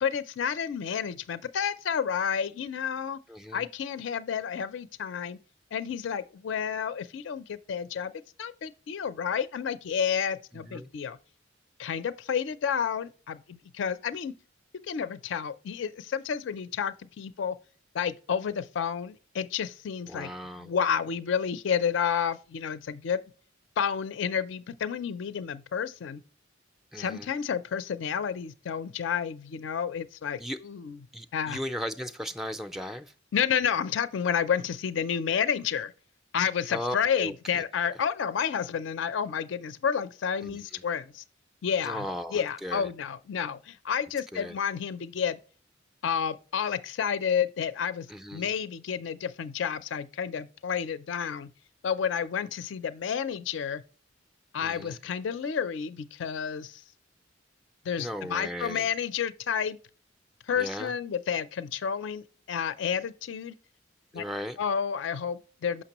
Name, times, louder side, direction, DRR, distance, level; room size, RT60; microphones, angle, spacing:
voice 1, 0.0-3.2 3.5-5.4 5.7-8.1 8.4-11.2 11.8-14.3 14.9-17.6 17.9-20.3 20.6-23.2 23.8-26.2 27.0-31.0 31.3-31.6 33.3-35.9 36.3-41.2 41.6-42.1 42.3-45.4 46.0-51.5 51.8-53.8 54.5-56.8 57.9-59.8 60.5-63.5 64.1-64.2 64.6-65.8, left 7 dB, 70° left, 0.4 m, -30 dB
voice 2, 3.3-3.7 10.5-10.9 20.1-20.7 26.9-27.3 30.4-30.6 31.1-33.1 36.7-37.6 40.4-40.8 41.8-42.9 44.3-44.6 48.1-48.5 54.6-55.0 58.0-58.9 60.6-60.9 64.1-64.6, equal, ahead, 0.3 m, -37 dB
6.4 x 5.9 x 2.9 m
head